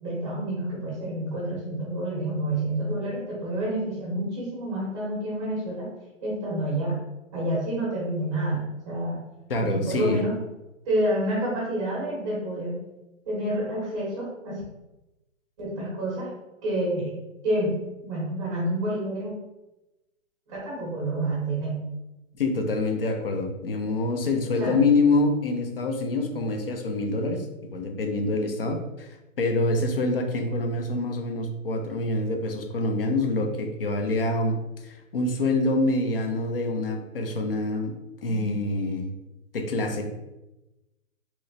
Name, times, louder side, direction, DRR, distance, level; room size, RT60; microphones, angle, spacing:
voice 1, 0.0-5.9 6.2-7.0 7.3-9.2 9.5-10.4 10.8-12.8 13.2-14.6 15.6-16.3 16.6-17.2 17.4-19.3 20.5-21.8 24.6-24.8 38.3-38.6, right 1 dB, 25° right, -6 dB, 0.7 m, -28 dB
voice 2, 9.5-10.2 22.3-27.5 27.7-29.1 29.4-34.6 34.8-37.9 38.2-39.1 39.5-40.0, left 2 dB, 45° left, 3 dB, 0.5 m, -26 dB
3.0 x 3.0 x 2.7 m, 1.0 s
hypercardioid pair, 165°, 41 cm